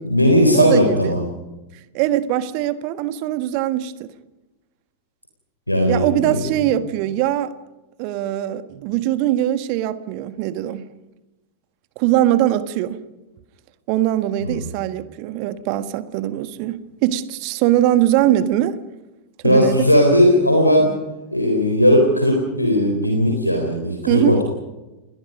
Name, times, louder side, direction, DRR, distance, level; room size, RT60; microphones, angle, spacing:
voice 1, 0.0-1.2 5.7-6.5 14.4-14.6 19.4-20.9 21.3-24.4, equal, 85° left, 3.7 m, -17 dB
voice 2, 0.5-1.1 1.9-4.1 5.9-7.5 8.0-10.8 12.0-13.0 13.9-18.8 19.4-19.8 24.1-24.4, right 13 dB, 45° right, 1.5 m, -21 dB
29.5 x 21.5 x 5.2 m
figure-of-eight pair, 90°, 0 cm